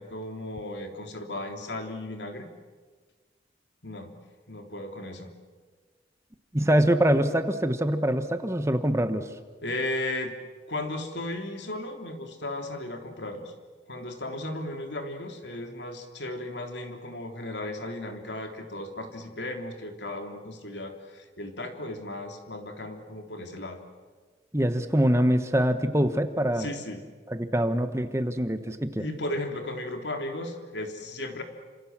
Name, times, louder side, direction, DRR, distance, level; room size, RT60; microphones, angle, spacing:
voice 1, 0.0-2.5 3.8-4.1 4.5-5.3 9.6-10.3 10.7-13.5 13.8-23.8 26.6-27.0 29.0-31.4, left 1 dB, 80° left, 4 dB, 3.4 m, -35 dB
voice 2, 6.5-9.3 24.5-26.7 27.3-29.0, right 1 dB, 15° right, 9 dB, 1.3 m, -24 dB
29.0 x 27.0 x 7.5 m, 1.4 s
head